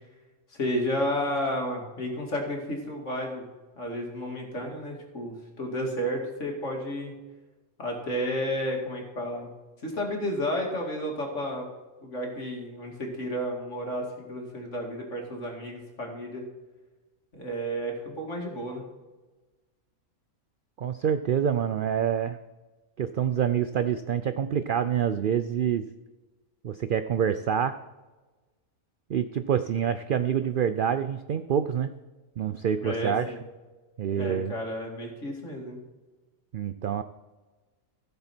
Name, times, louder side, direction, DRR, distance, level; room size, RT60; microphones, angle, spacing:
voice 1, 0.5-7.1 7.8-9.5 9.8-11.7 12.0-16.4 17.3-18.8 32.8-33.4 34.2-35.8, equal, 60° left, 0 dB, 2.6 m, -32 dB
voice 2, 20.8-22.4 23.0-25.9 26.6-27.7 29.1-31.9 32.4-33.3 34.0-34.6 36.5-37.0, right 8 dB, 85° right, 11 dB, 0.4 m, -26 dB
16.0 x 7.0 x 4.4 m, 1.2 s
omnidirectional pair, 1.4 m